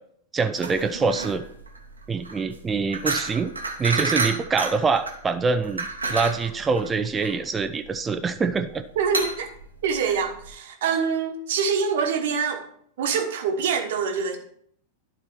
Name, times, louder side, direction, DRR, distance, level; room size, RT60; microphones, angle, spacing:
voice 1, 0.3-1.4 2.1-3.5 3.8-8.8, right 4 dB, 15° right, 8 dB, 0.5 m, -25 dB
sound 1, 0.5-10.5, right 3 dB, 80° right, 1.1 m, -31 dB
voice 2, 8.9-9.5 9.8-12.7 13.0-14.4, right 6 dB, 55° right, 3 dB, 1.2 m, -25 dB
11.5 x 4.3 x 4.5 m, 0.66 s
figure-of-eight pair, 90°, 0 cm